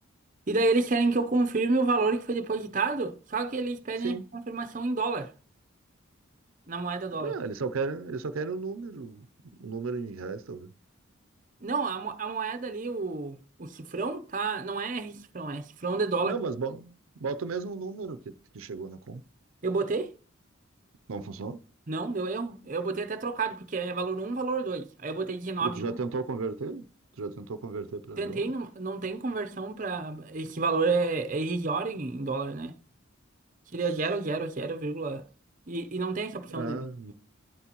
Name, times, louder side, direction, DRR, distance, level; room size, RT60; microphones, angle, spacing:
voice 1, 0.5-5.3 6.7-7.3 11.6-16.4 19.6-20.1 21.9-26.0 28.2-32.8 33.7-35.2 35.7-36.8, right 3 dB, 40° right, 0.6 m, -30 dB
voice 2, 7.1-9.3 9.6-10.7 16.2-19.2 21.1-21.6 25.6-26.8 27.2-28.5 35.7-35.8 36.5-37.1, right 4 dB, 85° right, 0.5 m, -35 dB
11.0 x 8.1 x 2.9 m
head